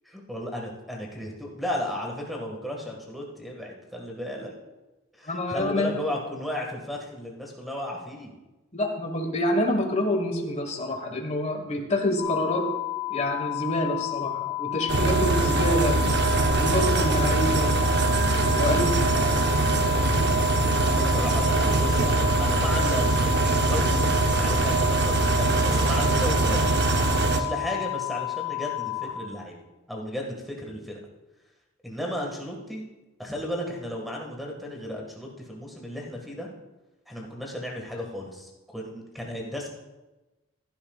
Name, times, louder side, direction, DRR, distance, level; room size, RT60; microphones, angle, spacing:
voice 1, 0.1-4.5 5.2-8.3 20.4-24.0 24.3-26.7 27.3-29.6 29.9-31.0 31.8-32.9 33.2-36.5 37.1-39.7, left 1 dB, ahead, -1 dB, 1.8 m, -34 dB
voice 2, 5.2-6.0 8.7-12.7 13.1-16.0 16.6-17.9 18.5-19.4, left 1 dB, 30° left, 3 dB, 1.4 m, -27 dB
sound 1, 12.2-29.0, left 19 dB, 35° right, 2.0 m, -31 dB
sound 2, 14.9-27.4, right 3 dB, 55° right, 0.8 m, -23 dB
15.5 x 11.5 x 2.4 m, 1.1 s
head